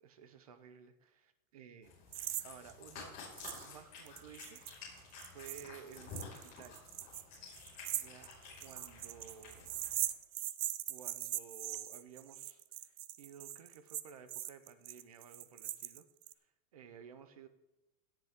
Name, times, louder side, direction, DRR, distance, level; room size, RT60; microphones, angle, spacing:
voice 1, 0.0-1.9 2.4-3.2 3.6-5.0 5.3-6.8 7.9-8.3 8.6-9.7 10.9-16.0 16.7-17.5, right 7 dB, 25° right, 12 dB, 0.5 m, -55 dB
Cat, 1.8-10.0, left 4 dB, 20° left, 5.0 m, -52 dB
sound 1, 2.1-2.4 2.7-2.8 3.4-3.7 4.0-16.3, right 13 dB, 70° right, 0.9 m, -41 dB
17.5 x 10.5 x 3.5 m, 1.0 s
supercardioid pair, 180°, 43 cm